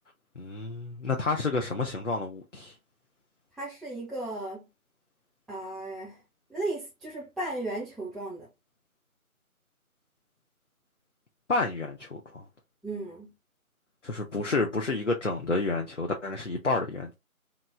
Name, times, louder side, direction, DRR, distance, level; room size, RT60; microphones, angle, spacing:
voice 1, 0.4-2.7 11.5-12.4 14.0-17.1, left 3 dB, 55° left, 0.6 m, -30 dB
voice 2, 3.6-4.7 5.5-6.2 6.5-8.5 12.8-13.3, right 2 dB, ahead, 0.5 m, -35 dB
2.9 x 2.3 x 3.5 m
figure-of-eight pair, 170°, 44 cm